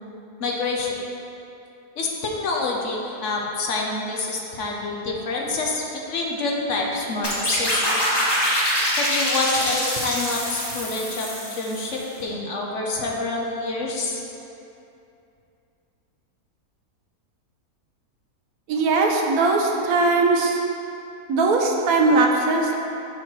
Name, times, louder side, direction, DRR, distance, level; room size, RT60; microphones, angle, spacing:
voice 1, 0.4-1.0 2.0-5.8 6.1-8.0 9.0-14.2, left 3 dB, 55° left, -1 dB, 1.0 m, -27 dB
sound 1, 7.2-12.0, equal, 15° left, 1.1 m, -24 dB
voice 2, 18.7-20.6 21.3-22.8, right 3 dB, 70° right, 1 dB, 1.2 m, -20 dB
7.5 x 4.5 x 4.5 m, 2.7 s
omnidirectional pair, 1.7 m